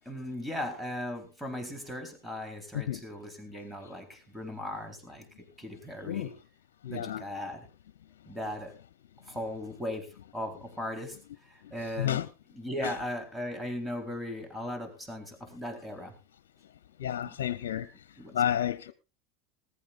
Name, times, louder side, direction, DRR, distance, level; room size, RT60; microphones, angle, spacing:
voice 1, 0.1-6.3 6.9-7.7 8.3-8.8 9.2-12.2 12.5-16.1 17.3-17.4 18.2-18.4, left 1 dB, 5° right, 4.1 m, -38 dB
voice 2, 6.8-7.2 12.0-12.3 12.8-12.9 17.0-17.9 18.3-18.9, left 10 dB, 90° left, 0.8 m, -30 dB
19.5 x 15.0 x 2.6 m
supercardioid pair, 110°, 0 cm